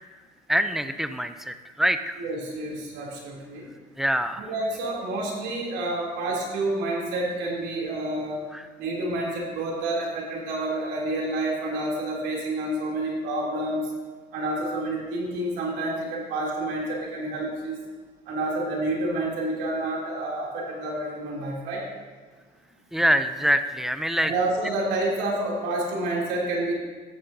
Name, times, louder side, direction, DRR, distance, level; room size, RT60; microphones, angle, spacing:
voice 1, 0.5-2.2 4.0-4.5 8.5-8.7 22.9-24.3, equal, ahead, 9 dB, 0.6 m, -25 dB
voice 2, 2.2-3.7 4.4-8.4 8.8-13.9 14.3-17.8 18.3-21.8 24.2-26.7, right 2 dB, 90° right, -3 dB, 3.2 m, -29 dB
14.0 x 9.8 x 2.8 m, 1.4 s
cardioid pair, 110°, 17 cm